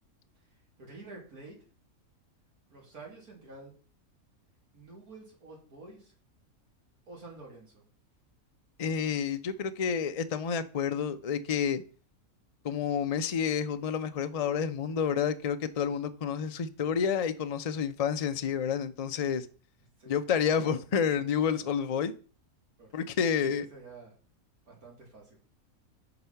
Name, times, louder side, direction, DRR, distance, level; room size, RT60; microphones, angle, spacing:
voice 1, 0.8-1.6 2.7-3.7 4.7-6.1 7.1-7.8 20.0-20.2 22.8-23.0 23.4-24.1 24.7-25.4, right 3 dB, 85° right, -2 dB, 3.4 m, -49 dB
voice 2, 8.8-11.8 12.6-19.5 20.1-22.1 22.9-23.7, left 7 dB, 55° left, 10 dB, 0.4 m, -29 dB
7.9 x 4.9 x 5.7 m, 0.40 s
omnidirectional pair, 1.5 m